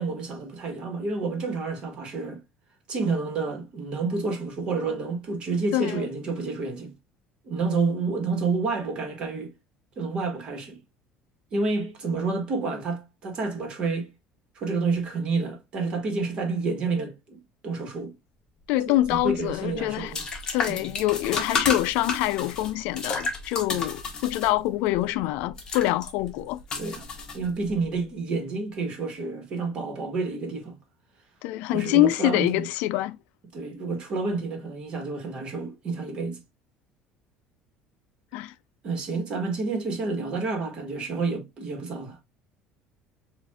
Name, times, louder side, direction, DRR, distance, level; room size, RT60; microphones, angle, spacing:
voice 1, 0.0-2.4 2.9-6.9 7.4-9.5 10.0-10.8 11.5-14.1 14.5-18.1 18.9-20.2 20.7-20.9 26.8-27.0 27.3-30.7 31.7-32.7 33.5-36.4 38.8-42.2, right 4 dB, 35° right, 1.4 m, -29 dB
voice 2, 5.7-6.0 18.7-20.1 20.5-26.6 31.4-33.2 38.3-38.5, left 15 dB, 75° left, 0.3 m, -25 dB
sound 1, 19.0-27.8, left 4 dB, 30° left, 0.9 m, -32 dB
7.0 x 2.5 x 2.3 m
cardioid pair, 150°, 3 cm